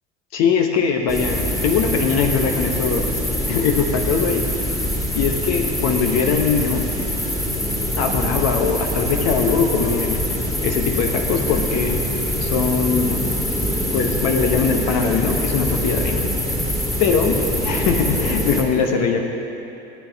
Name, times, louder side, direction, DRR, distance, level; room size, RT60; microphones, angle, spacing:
voice 1, 0.3-3.2 3.5-4.5 5.1-6.9 8.0-10.2 10.6-12.0 12.4-13.3 13.9-16.2 17.0-19.2, left 6 dB, 45° left, 3 dB, 1.0 m, -21 dB
sound 1, 1.1-18.6, equal, 10° left, 2.0 m, -24 dB
17.0 x 9.7 x 3.5 m, 2.9 s
figure-of-eight pair, 75°, 37 cm